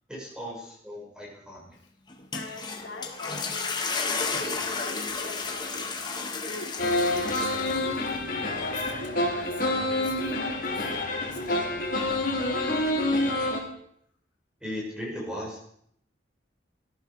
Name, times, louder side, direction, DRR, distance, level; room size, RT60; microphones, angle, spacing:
voice 1, 0.1-1.8 14.6-15.7, equal, 5° right, -3 dB, 5.3 m, -37 dB
sound 1, 2.1-8.1, left 4 dB, 25° left, 1.7 m, -32 dB
voice 2, 2.3-3.9 4.1-5.9 6.4-8.0 8.4-10.8 11.2-11.8, left 2 dB, 80° left, -1 dB, 3.8 m, -43 dB
sound 2, 6.8-13.6, left 1 dB, 50° left, 4.0 m, -27 dB
18.5 x 13.5 x 4.8 m, 0.69 s
head